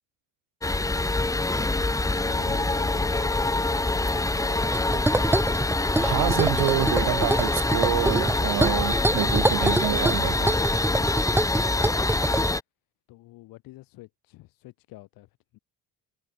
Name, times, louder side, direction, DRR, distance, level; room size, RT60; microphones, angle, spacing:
sound 1, 0.6-12.6, left 2 dB, 10° left, 1.6 m, -25 dB
voice 1, 1.6-5.3 13.1-15.6, left 18 dB, 85° left, 5.0 m, -47 dB
sound 2, 4.6-12.5, right 1 dB, 5° right, 1.8 m, -26 dB
voice 2, 6.0-10.6, right 17 dB, 75° right, 1.3 m, -27 dB
cardioid pair, 125°, 33 cm